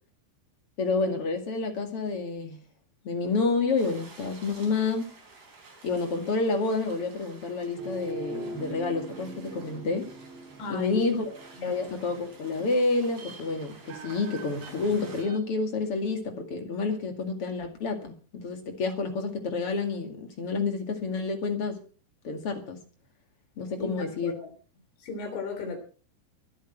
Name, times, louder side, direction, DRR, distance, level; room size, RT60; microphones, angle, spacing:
voice 1, 0.8-2.6 3.0-5.1 5.8-10.1 10.7-11.3 11.6-21.8 22.2-22.8 23.6-24.3, left 3 dB, 40° left, 2.3 m, -29 dB
sound 1, 3.8-15.2, right 3 dB, 50° right, 6.0 m, -52 dB
sound 2, 7.8-15.4, right 2 dB, 90° right, 4.6 m, -43 dB
voice 2, 10.6-11.1 11.6-11.7 23.8-24.5 25.0-25.8, left 3 dB, 80° left, 5.6 m, -35 dB
24.0 x 8.2 x 4.5 m
omnidirectional pair, 5.1 m